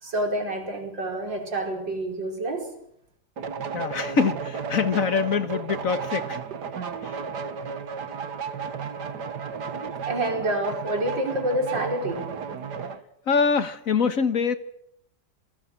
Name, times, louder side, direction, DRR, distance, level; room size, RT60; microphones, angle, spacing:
voice 1, 0.0-2.7 10.0-12.3, right 1 dB, 85° right, 5.5 m, -28 dB
sound 1, 3.4-13.0, right 5 dB, 65° right, 2.1 m, -33 dB
voice 2, 3.7-6.4 7.0-7.2 13.3-14.6, left 5 dB, 50° left, 1.6 m, -24 dB
27.5 x 20.5 x 7.5 m
omnidirectional pair, 1.9 m